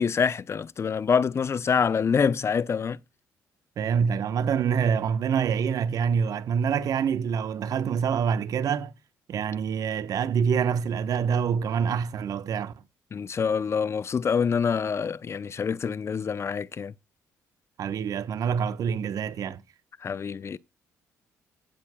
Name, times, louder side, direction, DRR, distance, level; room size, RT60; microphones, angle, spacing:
voice 1, 0.0-3.0 13.1-16.9 20.0-20.6, left 6 dB, 45° left, 0.6 m, -26 dB
voice 2, 3.8-8.9 9.3-12.7 17.8-19.6, right 7 dB, 60° right, 1.1 m, -26 dB
16.0 x 7.3 x 2.3 m
supercardioid pair, 60°, 7 cm